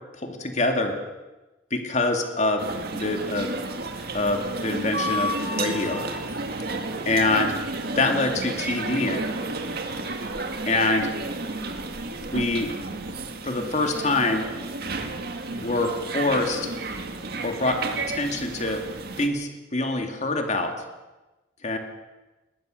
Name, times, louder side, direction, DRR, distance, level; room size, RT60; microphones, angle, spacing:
voice 1, 0.2-1.0 1.7-2.7 2.9-3.5 4.1-6.0 7.1-7.6 8.0-9.2 10.7-11.1 12.3-12.7 13.4-14.4 15.6-16.7 17.4-17.8 18.1-18.8 19.2-20.7 21.6-21.8, left 2 dB, 40° left, 4 dB, 2.4 m, -25 dB
sound 1, 2.6-19.3, right 2 dB, 55° right, 2.0 m, -31 dB
20.5 x 20.0 x 6.7 m, 1.1 s
head